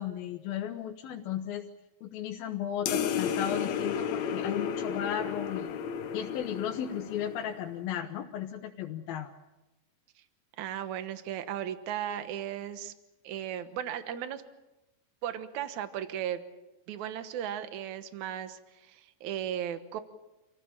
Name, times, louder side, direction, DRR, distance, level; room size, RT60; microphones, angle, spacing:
voice 1, 0.0-1.7 2.0-5.7 6.1-9.3, left 9 dB, 85° left, 1 dB, 3.0 m, -35 dB
sound 1, 2.9-7.7, left 8 dB, 65° left, 2.0 m, -33 dB
voice 2, 10.6-12.9 13.2-14.4 15.2-16.4 16.9-20.0, right 10 dB, 65° right, 10 dB, 2.4 m, -36 dB
28.0 x 16.5 x 8.7 m, 1.0 s
omnidirectional pair, 4.1 m